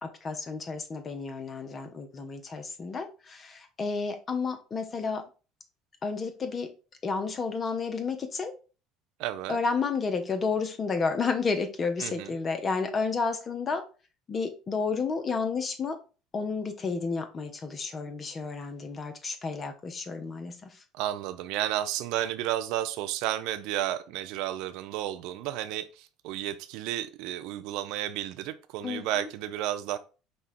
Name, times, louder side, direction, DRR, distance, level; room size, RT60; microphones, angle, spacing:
voice 1, 0.0-5.2 6.0-6.7 7.0-8.5 9.5-13.8 14.3-16.0 16.3-20.8 28.8-29.2, left 4 dB, 35° left, 0.7 m, -31 dB
voice 2, 9.2-9.6 12.0-12.3 20.9-30.0, right 13 dB, 70° right, 0.5 m, -32 dB
5.3 x 2.3 x 4.3 m
hypercardioid pair, 75°, 0 cm